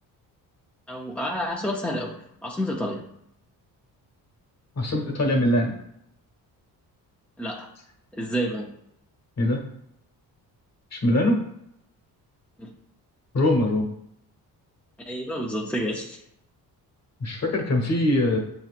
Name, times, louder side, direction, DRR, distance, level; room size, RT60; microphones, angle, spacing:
voice 1, 0.9-2.2 2.4-3.0 7.4-7.7 8.1-8.7 12.6-12.7 15.1-16.2, equal, 5° left, -3 dB, 0.5 m, -29 dB
voice 2, 4.7-5.7 9.4-9.6 10.9-11.4 13.3-13.9 17.2-18.4, left 1 dB, 40° left, 1 dB, 1.2 m, -22 dB
7.5 x 2.8 x 2.5 m, 0.76 s
cardioid pair, 110°, 39 cm